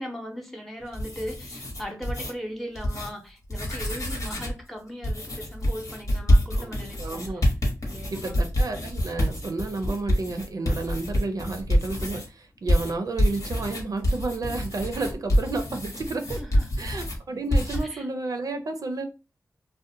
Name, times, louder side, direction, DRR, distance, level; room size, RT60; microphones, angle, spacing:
voice 1, 0.0-7.5 7.9-8.4 16.4-16.9 17.9-18.1, equal, 5° left, 0.7 m, -38 dB
sound 1, 0.8-2.3 2.7-3.1 3.4-4.6 5.0-12.3 12.7-17.2 17.5-17.8, equal, 55° left, 1.0 m, -26 dB
voice 2, 7.0-7.4 8.1-16.4 16.8-19.0, right 3 dB, 65° right, 0.4 m, -31 dB
2.4 x 2.1 x 2.7 m
cardioid pair, 65°, 7 cm